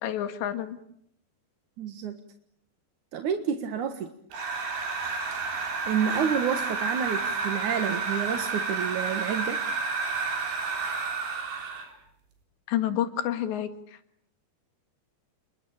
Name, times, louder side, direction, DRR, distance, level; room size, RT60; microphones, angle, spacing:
voice 1, 0.0-0.8 12.7-13.7, left 11 dB, 90° left, 9 dB, 4.2 m, -28 dB
voice 2, 1.8-2.1 3.1-4.1 5.9-9.6, right 8 dB, 55° right, 7 dB, 2.5 m, -29 dB
sound 1, 4.3-11.9, right 4 dB, 75° right, 5.8 m, -30 dB
29.5 x 21.5 x 8.8 m, 0.70 s
omnidirectional pair, 4.9 m